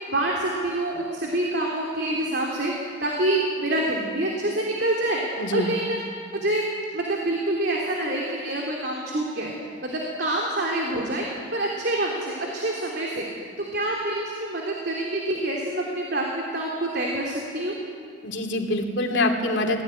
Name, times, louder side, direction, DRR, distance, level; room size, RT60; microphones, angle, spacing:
voice 1, 0.1-2.7 3.0-5.2 5.5-6.0 6.3-6.6 6.9-9.5 9.8-11.2 11.5-13.3 13.6-17.7, right 1 dB, 55° right, -2 dB, 3.1 m, -26 dB
voice 2, 5.4-5.7 18.2-19.8, left 1 dB, 65° left, 2 dB, 3.0 m, -25 dB
24.0 x 18.5 x 9.9 m, 2.3 s
head